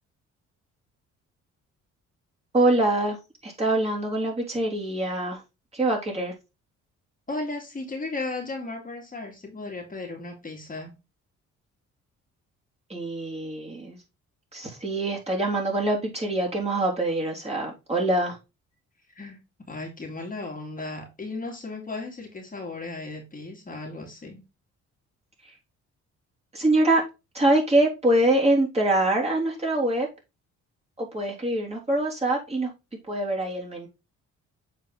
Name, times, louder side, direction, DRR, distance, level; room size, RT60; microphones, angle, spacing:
voice 1, 2.5-3.2 3.4-5.4 5.7-6.3 12.9-14.0 14.5-18.4 26.5-27.0 27.3-30.1 31.0-32.7 33.1-33.9, right 1 dB, 20° right, 3.3 m, -24 dB
voice 2, 7.3-10.9 19.1-19.4 19.7-24.4, left 3 dB, 25° left, 2.2 m, -35 dB
7.4 x 4.5 x 3.8 m
cardioid pair, 90°, 30 cm